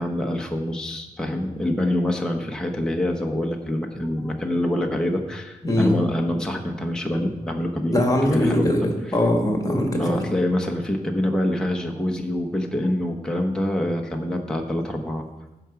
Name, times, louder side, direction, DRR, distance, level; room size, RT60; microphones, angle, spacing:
voice 1, 0.0-8.9 10.0-15.2, left 1 dB, 5° left, 1 dB, 1.1 m, -25 dB
voice 2, 7.9-10.2, left 1 dB, 20° left, 3 dB, 1.8 m, -21 dB
15.5 x 5.8 x 5.0 m, 1.0 s
wide cardioid pair, 120°, 16 cm